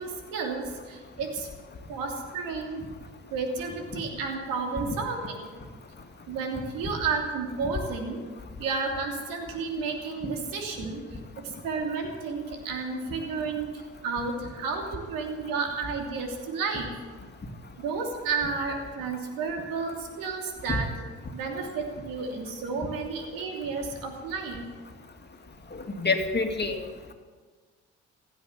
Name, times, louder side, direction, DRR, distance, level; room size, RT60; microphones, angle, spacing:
voice 1, 0.0-1.5 1.9-2.8 3.3-5.4 6.3-8.2 8.6-11.2 11.6-16.9 17.8-20.9 21.3-24.6, right 4 dB, 80° right, 2 dB, 3.0 m, -32 dB
voice 2, 26.0-26.8, left 3 dB, 30° left, 4 dB, 2.5 m, -27 dB
16.0 x 8.4 x 9.5 m, 1.5 s
hypercardioid pair, 55°, 34 cm